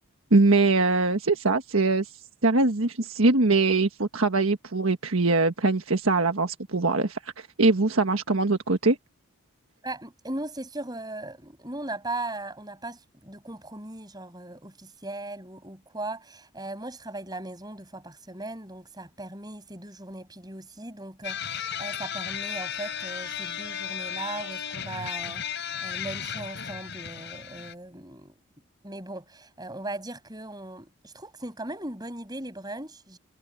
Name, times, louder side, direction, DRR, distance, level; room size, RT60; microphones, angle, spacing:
voice 1, 0.3-2.1 2.4-7.2 7.6-9.0, right 3 dB, 70° right, 1.4 m, -22 dB
voice 2, 9.8-28.3 28.8-33.2, right 2 dB, 20° right, 7.9 m, -38 dB
sound 1, 21.2-27.7, left 8 dB, 50° left, 7.8 m, -34 dB
head